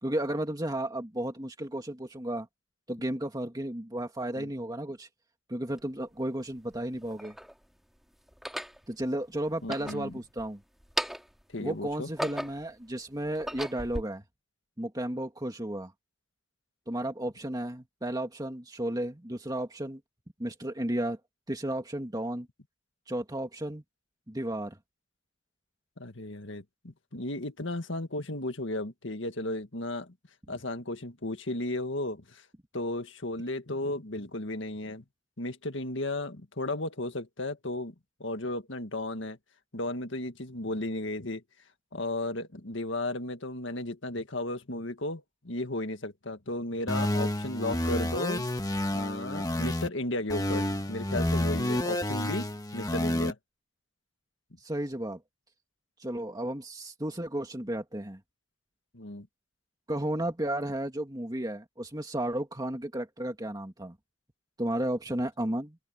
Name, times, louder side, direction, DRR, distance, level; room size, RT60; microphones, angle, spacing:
voice 1, 0.0-2.5 2.9-5.1 5.5-7.3 8.9-10.6 11.6-14.2 14.8-15.9 16.9-20.0 20.4-21.2 21.5-22.5 23.1-23.8 24.3-24.8 54.6-55.2 56.0-58.2 59.9-64.0 64.6-65.8, right 1 dB, 20° right, 2.2 m, -33 dB
sound 1, 5.8-5.9 6.7-7.5 8.3-8.8 9.5-10.5 10.8-11.4 11.9-12.7 13.2-14.0, equal, ahead, 2.5 m, -36 dB
voice 2, 9.6-10.2 11.5-12.1 26.0-30.1 30.5-32.4 32.7-35.0 35.4-37.9 38.2-39.4 39.7-41.4 41.9-48.4 48.9-53.4 58.9-59.3, left 2 dB, 70° left, 2.0 m, -34 dB
sound 2, 46.9-49.9 50.3-53.3, left 1 dB, 20° left, 1.6 m, -29 dB
head